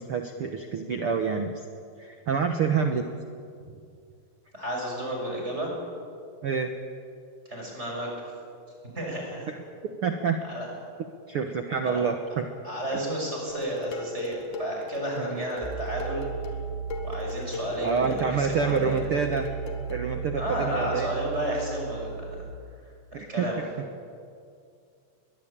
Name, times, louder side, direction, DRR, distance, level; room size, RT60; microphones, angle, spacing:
voice 1, 0.0-1.6 2.0-3.0 6.4-6.7 10.0-10.4 11.3-12.4 15.2-15.4 17.8-19.5 19.9-21.1 23.1-23.6, right 6 dB, 80° right, 5 dB, 1.2 m, -27 dB
voice 2, 4.5-5.7 7.4-8.3 8.9-9.5 10.4-10.7 11.8-12.0 12.6-16.5 17.0-19.0 20.4-22.4 23.1-23.6, right 1 dB, 15° right, -1 dB, 6.5 m, -32 dB
Dishes pots and pans, 13.5-20.1, left 2 dB, 60° left, 3.3 m, -39 dB
sound 1, 15.6-22.5, right 6 dB, 10° left, 3.6 m, -36 dB
22.5 x 21.0 x 8.8 m, 2.3 s
omnidirectional pair, 4.2 m